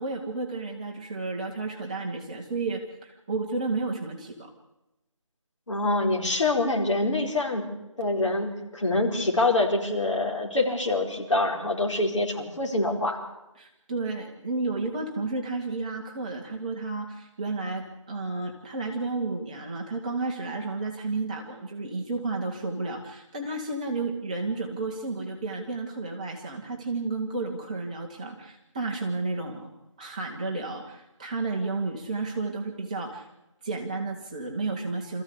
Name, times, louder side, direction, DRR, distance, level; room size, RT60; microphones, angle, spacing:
voice 1, 0.0-4.5 13.6-29.7 30.0-33.3 33.6-35.2, right 3 dB, 15° right, -1 dB, 1.2 m, -32 dB
voice 2, 5.7-7.6 8.0-13.2, left 2 dB, 60° left, 0 dB, 4.7 m, -25 dB
26.0 x 14.5 x 8.5 m, 0.95 s
figure-of-eight pair, 175°, 17 cm